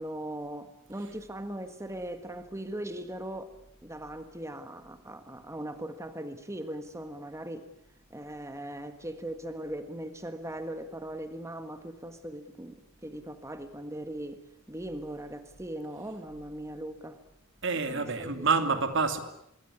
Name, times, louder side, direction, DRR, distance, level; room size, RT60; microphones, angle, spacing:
voice 1, 0.0-3.5 3.8-7.7 8.1-12.8 13.0-14.4 14.7-17.2 17.9-18.5, right 1 dB, 15° right, 1.6 m, -39 dB
voice 2, 17.6-19.2, right 4 dB, 60° right, 2.9 m, -27 dB
26.0 x 23.0 x 9.9 m
head